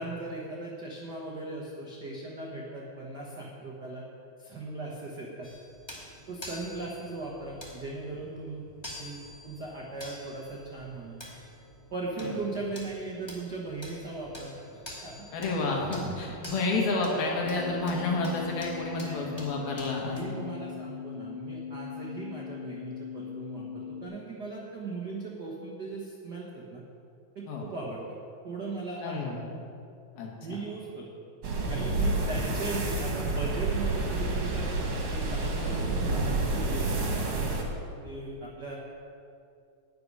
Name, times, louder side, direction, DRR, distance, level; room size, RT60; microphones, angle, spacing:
voice 1, 0.0-4.0 4.4-5.5 6.3-8.6 9.0-11.2 11.9-15.3 16.0-16.2 19.0-19.3 20.0-26.8 27.3-28.0 28.4-29.4 30.4-31.2 31.7-37.4 38.0-38.8, right 3 dB, 85° right, -3 dB, 0.9 m, -38 dB
sound 1, 5.4-20.2, left 1 dB, 10° left, 1.2 m, -48 dB
voice 2, 15.3-20.4 27.5-27.7 29.0-29.4 30.2-30.6 32.2-32.4 35.5-35.8, left 3 dB, 90° left, -1 dB, 3.8 m, -30 dB
sound 2, 17.4-24.0, left 7 dB, 65° left, 3.4 m, -40 dB
sound 3, 31.4-37.6, right 2 dB, 50° right, 2.5 m, -29 dB
11.5 x 6.9 x 9.6 m, 2.5 s
omnidirectional pair, 4.1 m